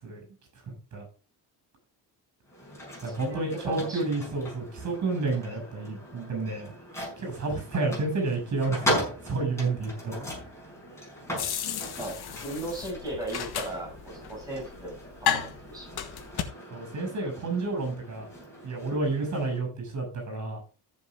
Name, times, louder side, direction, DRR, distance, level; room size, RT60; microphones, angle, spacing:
voice 1, 0.7-1.0 3.0-6.7 7.2-10.1 16.7-18.3 18.6-20.6, right 3 dB, 45° right, 3 dB, 6.9 m, -30 dB
sound 1, 2.5-19.6, equal, 5° left, 5.5 m, -38 dB
voice 2, 3.0-4.0 10.1-10.7 12.0-15.9, right 1 dB, 10° right, -3 dB, 6.2 m, -38 dB
sound 2, 11.4-16.4, left 9 dB, 70° left, 1.9 m, -33 dB
14.5 x 7.2 x 3.6 m, 0.35 s
cardioid pair, 150°, 40 cm